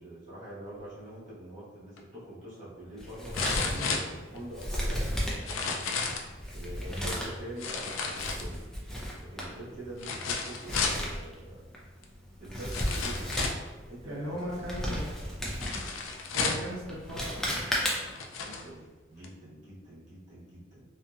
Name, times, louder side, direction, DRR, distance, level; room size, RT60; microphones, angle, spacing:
voice 1, 0.0-5.8 6.5-8.6 9.2-11.6 12.4-13.3 13.8-14.6 18.4-20.8, right 1 dB, 40° right, -9 dB, 1.1 m, -45 dB
sound 1, 2.0-2.1 3.3-4.6 5.3-6.3 7.6-8.8 10.0-11.0 12.0-12.1 12.7-13.7 15.6-16.7 17.5-17.6 18.1-18.7 19.2-19.3, left 4 dB, 85° left, 0.4 m, -32 dB
Male speech man speaking, 3.0-18.3, equal, ahead, 0.4 m, -35 dB
voice 2, 14.0-15.1 16.3-17.7, equal, 80° right, -5 dB, 0.6 m, -38 dB
2.7 x 2.6 x 2.3 m, 1.3 s
head